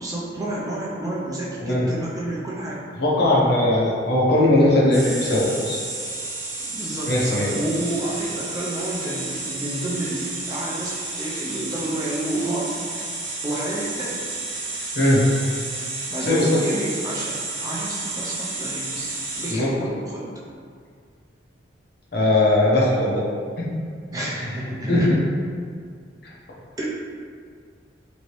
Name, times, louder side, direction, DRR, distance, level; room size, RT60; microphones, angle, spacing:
voice 1, 0.0-2.8 6.6-12.7 13.4-14.2 16.1-18.9 19.4-20.3 24.1-25.1 26.8-26.9, right 1 dB, 20° right, -5 dB, 0.4 m, -30 dB
voice 2, 3.0-5.8 7.1-7.5 15.0-15.2 16.3-16.5 18.9-19.1 19.5-19.7 22.1-23.2 23.6-23.7 24.9-25.2, left 1 dB, 55° left, -5 dB, 0.7 m, -19 dB
sound 1, 4.9-19.5, right 3 dB, 70° right, 0.7 m, -31 dB
3.0 x 2.6 x 3.0 m, 2.1 s
head